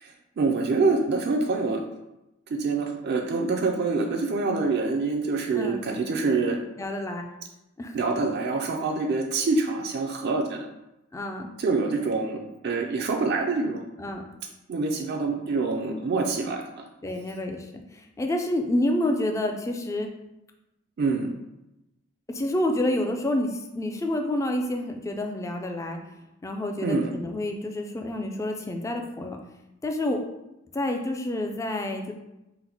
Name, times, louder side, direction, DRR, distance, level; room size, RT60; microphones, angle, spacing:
voice 1, 0.0-1.8 2.5-6.6 7.9-10.7 11.6-13.8 14.7-16.8 21.0-21.3 26.8-27.1, right 3 dB, 55° right, 2 dB, 0.4 m, -26 dB
voice 2, 6.8-7.2 7.8-8.0 11.1-11.5 14.0-14.2 17.0-17.7 18.0-20.1 22.3-26.0 26.4-29.4 29.8-30.2 30.7-32.1, left 1 dB, 15° left, 3 dB, 0.3 m, -28 dB
3.9 x 2.1 x 4.3 m, 0.92 s
head